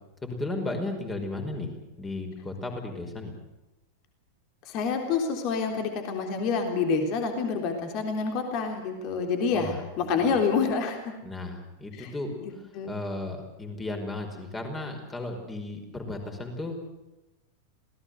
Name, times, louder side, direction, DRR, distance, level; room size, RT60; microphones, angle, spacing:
voice 1, 0.2-3.3 9.5-9.8 10.2-10.3 11.2-12.3 12.9-16.8, left 2 dB, 15° left, 4 dB, 5.3 m, -35 dB
voice 2, 4.6-11.1 12.0-12.1 12.4-12.9, left 5 dB, 40° left, 5 dB, 3.6 m, -28 dB
27.0 x 18.5 x 8.1 m, 0.99 s
figure-of-eight pair, 90°, 0 cm